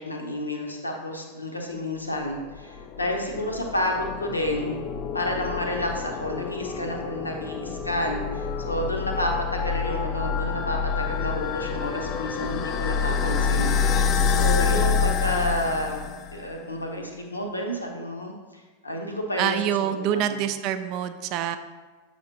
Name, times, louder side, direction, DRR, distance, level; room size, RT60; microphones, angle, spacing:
voice 1, 0.0-4.8 5.1-16.1 16.3-20.4, left 1 dB, 80° left, 2 dB, 0.8 m, -30 dB
sound 1, 2.3-16.5, left 6 dB, 35° left, 0.4 m, -27 dB
voice 2, 19.4-21.6, right 10 dB, 40° right, 10 dB, 0.3 m, -26 dB
7.2 x 5.0 x 2.7 m, 1.3 s
figure-of-eight pair, 90°, 0 cm